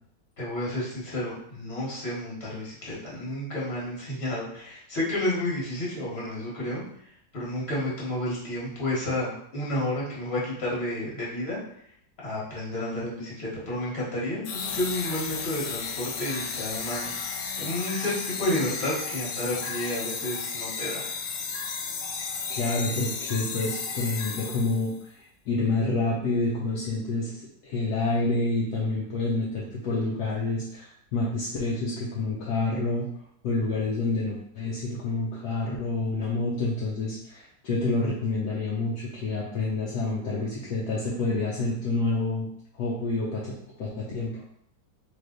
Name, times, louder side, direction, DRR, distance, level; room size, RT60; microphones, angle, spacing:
voice 1, 0.4-6.8 7.3-11.6 12.2-17.3 17.6-21.1, left 1 dB, 40° left, -6 dB, 1.6 m, -31 dB
sound 1, 14.4-25.0, left 5 dB, 85° left, 0.6 m, -33 dB
voice 2, 22.5-33.1 33.4-42.5 42.7-44.4, left 2 dB, 70° left, -5 dB, 1.2 m, -28 dB
3.3 x 3.2 x 3.8 m, 0.70 s
omnidirectional pair, 1.9 m